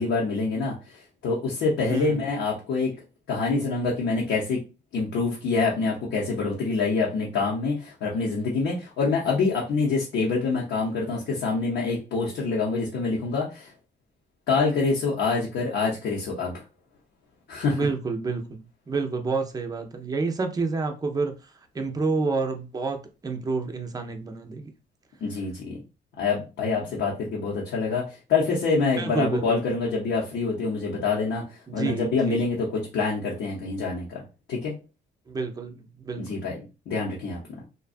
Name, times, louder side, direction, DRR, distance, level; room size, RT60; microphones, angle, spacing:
voice 1, 0.0-2.9 3.3-4.6 4.9-13.7 14.5-16.6 17.5-17.8 25.2-25.8 26.2-34.2 34.5-34.7 36.2-36.6 36.9-37.4, left 4 dB, 70° left, 0.7 m, -26 dB
voice 2, 1.9-2.2 17.7-21.3 21.7-24.7 26.9-27.0 29.0-29.4 31.7-32.4 35.3-36.4, right 4 dB, 20° right, 0.5 m, -29 dB
2.5 x 2.2 x 2.4 m
cardioid pair, 90°, 20 cm